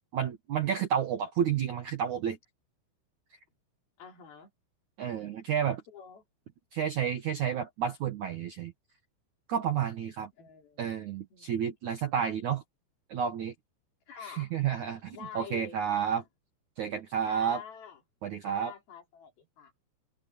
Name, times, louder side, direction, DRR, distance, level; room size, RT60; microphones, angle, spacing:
voice 1, 0.1-2.4 5.0-5.8 6.7-8.7 9.5-10.3 10.8-12.6 13.1-13.5 14.2-16.2 16.8-17.6 18.2-18.7, right 8 dB, 75° right, 1.7 m, -31 dB
voice 2, 4.0-4.5 5.9-6.2 10.4-10.8 11.3-11.5 14.1-14.5 15.1-16.3 17.3-18.0 18.4-19.7, left 8 dB, 55° left, 5.8 m, -46 dB
omnidirectional pair, 5.5 m